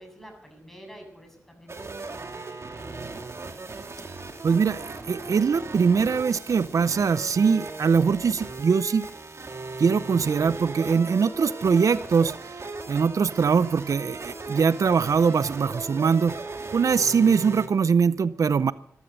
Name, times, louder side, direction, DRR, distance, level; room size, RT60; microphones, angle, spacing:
voice 1, 0.0-3.2, equal, 5° left, 3 dB, 7.5 m, -49 dB
sound 1, 1.7-17.7, right 3 dB, 55° right, 2.3 m, -37 dB
voice 2, 4.4-9.0 9.8-12.3 12.9-16.4 16.7-18.7, right 6 dB, 70° right, 16 dB, 0.6 m, -22 dB
14.5 x 12.5 x 6.6 m, 0.68 s
cardioid pair, 45°, 6 cm